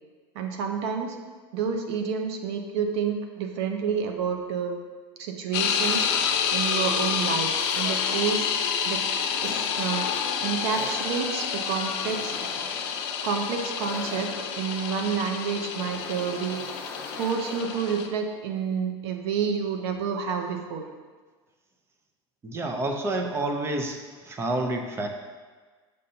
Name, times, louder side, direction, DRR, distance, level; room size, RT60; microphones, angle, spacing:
voice 1, 0.3-1.2 1.5-4.8 5.2-6.1 6.5-8.5 8.9-9.0 9.4-10.1 10.4-12.4 13.2-16.7 17.1-20.9, right 6 dB, 80° right, 5 dB, 0.8 m, -29 dB
sound 1, 5.5-18.1, left 7 dB, 70° left, 0.7 m, -28 dB
sound 2, 5.7-6.8 7.6-8.6 9.4-18.1, left 2 dB, 10° left, 0.8 m, -43 dB
voice 2, 22.4-25.1, right 2 dB, 20° right, 4 dB, 0.6 m, -29 dB
6.5 x 5.4 x 2.8 m, 1.4 s
supercardioid pair, 140°, 13 cm